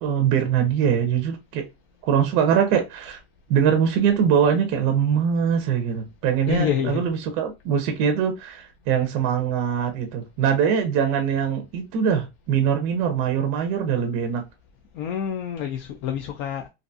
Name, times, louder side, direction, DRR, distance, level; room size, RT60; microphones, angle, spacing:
voice 1, 0.0-1.6 2.0-3.2 3.5-14.4, right 8 dB, 45° right, 0.5 m, -22 dB
voice 2, 6.5-7.0 14.9-16.7, left 8 dB, 65° left, 0.5 m, -27 dB
2.5 x 2.3 x 2.6 m
supercardioid pair, 160°, 30 cm